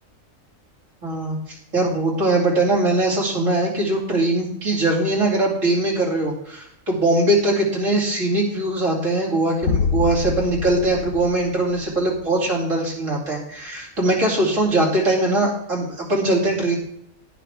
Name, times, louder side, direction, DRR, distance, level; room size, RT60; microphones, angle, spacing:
voice 1, 1.0-16.8, right 2 dB, 65° right, -3 dB, 3.3 m, -21 dB
sound 1, 9.6-12.2, left 5 dB, 80° left, 1.2 m, -26 dB
11.0 x 10.0 x 3.5 m, 0.73 s
omnidirectional pair, 1.4 m